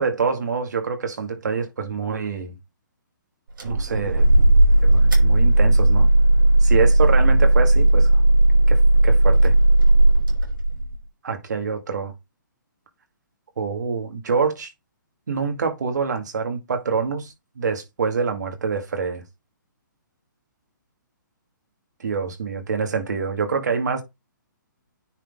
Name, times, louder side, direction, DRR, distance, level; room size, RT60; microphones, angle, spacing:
voice 1, 0.0-2.6 3.6-4.3 4.8-6.1 6.6-8.2 8.7-9.5 11.2-12.1 13.6-14.7 15.3-19.2 22.0-24.0, right 5 dB, 60° right, 2.2 m, -26 dB
sound 1, 3.6-11.0, right 1 dB, 75° right, 5.4 m, -16 dB
9.7 x 4.2 x 3.7 m
hypercardioid pair, 180°, 11 cm